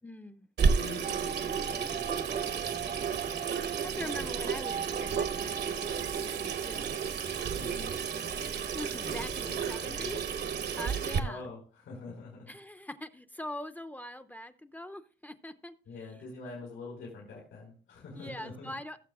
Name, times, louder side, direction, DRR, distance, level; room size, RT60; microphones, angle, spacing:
voice 1, 0.0-0.5 3.8-6.9 8.7-10.2 10.7-11.5 12.5-15.7 18.1-19.0, left 1 dB, 10° left, 10 dB, 0.7 m, -42 dB
Water tap faucet / Sink (filling or washing), 0.6-11.2, right 6 dB, 55° right, 1.0 m, -32 dB
voice 2, 0.7-2.3 2.6-3.0 7.5-7.9 9.4-10.1 11.1-12.5 15.8-18.7, left 3 dB, 85° left, -3 dB, 4.3 m, -45 dB
sound 1, 1.0-9.5 9.8-9.9 10.1-10.2, right 8 dB, 40° right, 0.4 m, -42 dB
Water / Sink (filling or washing), 5.6-10.5, right 9 dB, 85° right, 1.1 m, -49 dB
19.0 x 6.9 x 2.4 m, 0.40 s
cardioid pair, 90°, 20 cm